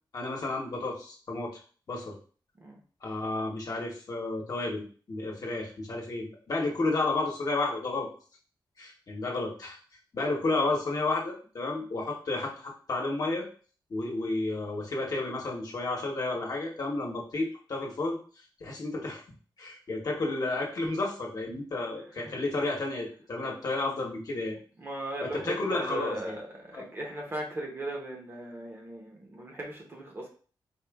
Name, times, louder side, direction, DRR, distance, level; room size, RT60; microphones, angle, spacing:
voice 1, 0.1-1.5 1.9-2.2 3.0-8.1 8.8-9.8 10.1-13.5 13.9-18.2 18.6-19.2 19.6-24.6 25.2-26.4 26.7-26.8, left 2 dB, 45° left, -2 dB, 1.1 m, -31 dB
voice 2, 24.8-30.3, right 1 dB, 25° right, 0 dB, 0.9 m, -37 dB
4.3 x 2.4 x 3.5 m, 0.41 s
wide cardioid pair, 175°, 8 cm